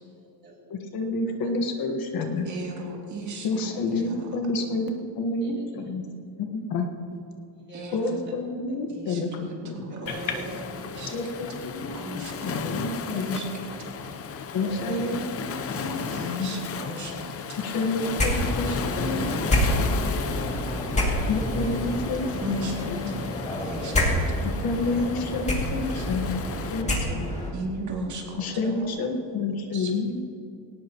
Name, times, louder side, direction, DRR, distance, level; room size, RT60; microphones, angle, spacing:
voice 1, 0.7-2.5 3.4-6.0 6.4-6.9 7.9-9.3 9.6-10.2 11.1-13.4 14.5-16.5 17.6-19.4 21.3-23.1 24.4-26.4 26.7-27.3 28.4-30.2, left 3 dB, 55° left, 3 dB, 1.5 m, -29 dB
voice 2, 2.4-4.3 7.7-8.0 8.9-10.2 10.8-11.1 11.5-11.6 11.9-12.8 13.2-13.5 14.0-14.1 15.7-17.8 18.6-18.8 22.3-23.3 23.6-24.5 24.8-25.2 25.9-26.1 27.1-28.4 29.7-29.9, right 3 dB, 40° right, -1 dB, 2.5 m, -38 dB
voice 3, 7.6-8.2 8.7-8.8 9.9-10.6 10.9-11.5 12.3-14.0 14.6-15.3 15.6-16.1 17.8-18.2 22.4-24.5 28.5-28.9, right 1 dB, 25° right, -3 dB, 3.3 m, -42 dB
Waves surf, 10.1-26.8, left 6 dB, 35° left, 0.7 m, -35 dB
sound 1, 18.1-27.5, left 1 dB, 15° left, 2.4 m, -28 dB
19.0 x 18.0 x 3.0 m, 2.5 s
cardioid pair, 175°, 43 cm